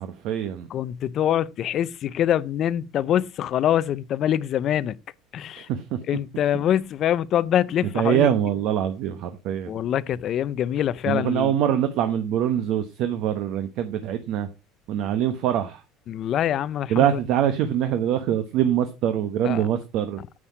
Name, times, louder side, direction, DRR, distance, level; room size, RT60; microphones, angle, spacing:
voice 1, 0.0-0.7 5.6-6.0 7.9-9.7 11.1-14.5 14.9-15.8 16.9-20.2, right 10 dB, 50° right, 1.0 m, -24 dB
voice 2, 0.7-5.0 5.3-5.7 6.1-8.3 9.7-11.5 16.1-17.1 19.4-19.6, left 10 dB, 35° left, 0.5 m, -24 dB
9.8 x 7.4 x 4.7 m
cardioid pair, 170°, 0 cm